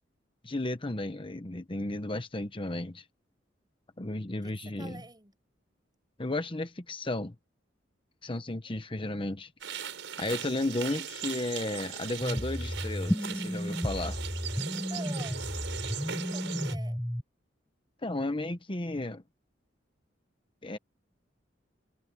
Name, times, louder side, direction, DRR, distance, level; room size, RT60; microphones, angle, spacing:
voice 1, 0.4-3.0 4.0-5.0 6.2-7.3 8.2-9.5 10.2-14.2 18.0-19.2 20.6-20.8, left 2 dB, 30° left, 1.1 m, -33 dB
voice 2, 4.4-5.3 8.3-8.8 14.7-15.6 16.3-17.0, right 2 dB, 25° right, 7.3 m, -47 dB
sound 1, 9.6-16.8, right 8 dB, 85° right, 4.4 m, -39 dB
sound 2, 12.2-17.2, equal, 5° left, 0.4 m, -33 dB
head